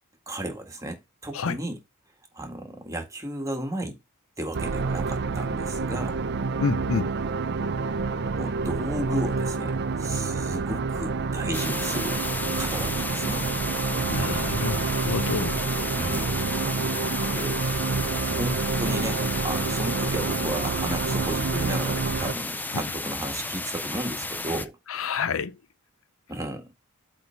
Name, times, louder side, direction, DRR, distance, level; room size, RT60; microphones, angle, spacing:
voice 1, 0.3-1.8 2.3-4.0 4.4-6.2 8.4-12.2 12.6-13.4 15.9-16.4 17.2-17.6 18.3-24.8 26.3-26.7, right 1 dB, 15° right, 1.8 m, -34 dB
sound 1, 4.5-22.3, right 4 dB, 50° right, 0.5 m, -28 dB
voice 2, 6.6-7.1 14.1-15.7 22.7-22.8 24.9-25.6, left 5 dB, 65° left, 0.5 m, -28 dB
sound 2, 11.5-24.7, left 2 dB, 10° left, 0.4 m, -33 dB
8.0 x 3.4 x 5.8 m
head